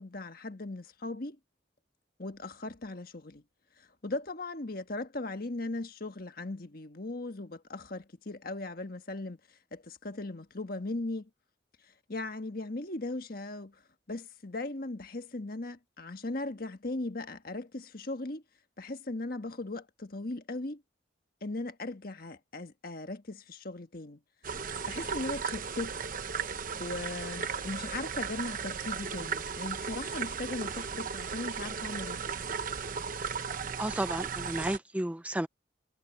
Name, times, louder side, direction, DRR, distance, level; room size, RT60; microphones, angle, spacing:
voice 1, 0.0-1.4 2.2-3.4 3.8-9.4 9.7-11.3 12.1-13.8 14.1-18.4 18.8-20.8 21.4-24.2 24.6-25.9 26.4-32.2, left 2 dB, 50° left, 1.5 m, -38 dB
sound 1, 24.4-34.8, right 6 dB, 45° right, 0.9 m, -36 dB
voice 2, 33.8-35.5, right 1 dB, 5° right, 0.4 m, -32 dB
head